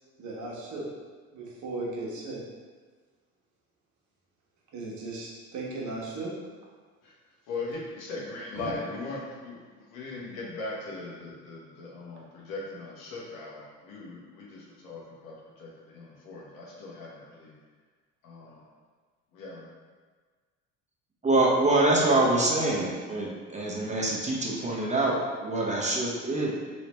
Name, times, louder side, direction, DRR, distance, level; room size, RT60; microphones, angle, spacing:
voice 1, 0.2-0.9 1.3-2.4 4.7-6.4 8.5-8.7, right 2 dB, 55° right, -4 dB, 1.1 m, -36 dB
voice 2, 7.5-17.5 18.2-18.7 19.3-19.7, left 3 dB, 70° left, -4 dB, 1.1 m, -39 dB
voice 3, 21.2-26.6, right 2 dB, 20° right, -3 dB, 0.9 m, -25 dB
3.1 x 3.0 x 3.0 m, 1.5 s
hypercardioid pair, 70°, 35 cm